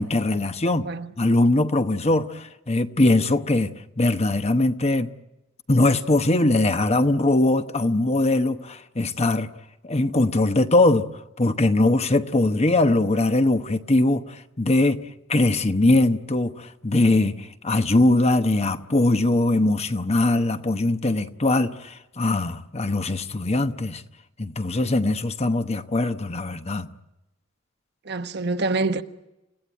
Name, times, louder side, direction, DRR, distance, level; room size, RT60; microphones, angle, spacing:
voice 1, 0.0-0.9 1.2-5.1 5.7-9.5 9.8-11.1 11.4-15.0 15.3-24.0 24.4-26.9, left 2 dB, 30° left, 1.0 m, -21 dB
voice 2, 0.6-1.1 28.0-29.0, right 3 dB, 55° right, 1.1 m, -26 dB
29.5 x 16.5 x 9.2 m
head